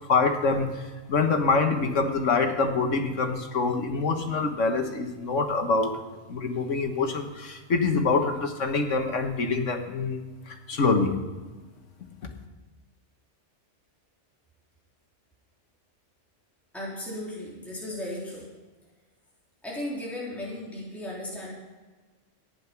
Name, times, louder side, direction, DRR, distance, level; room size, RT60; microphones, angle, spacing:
voice 1, 0.1-0.8 1.1-5.9 6.3-10.2 10.5-11.1 12.2-12.3, left 4 dB, 80° left, 5 dB, 1.8 m, -25 dB
voice 2, 16.7-18.5 19.6-21.5, left 1 dB, ahead, -7 dB, 3.7 m, -35 dB
15.0 x 10.0 x 5.9 m, 1.3 s
omnidirectional pair, 1.3 m